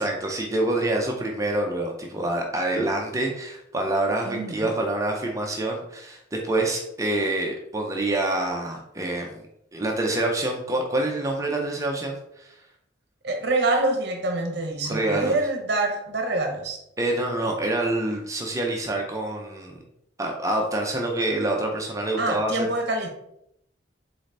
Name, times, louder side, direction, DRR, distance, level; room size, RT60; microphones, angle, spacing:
voice 1, 0.0-9.4 9.7-12.6 14.9-15.4 17.0-19.8 20.2-22.7, right 2 dB, 15° right, 0 dB, 0.5 m, -26 dB
voice 2, 4.3-4.7 13.2-16.8 22.2-23.1, right 2 dB, 55° right, 3 dB, 0.8 m, -26 dB
4.1 x 3.9 x 3.2 m, 0.77 s
head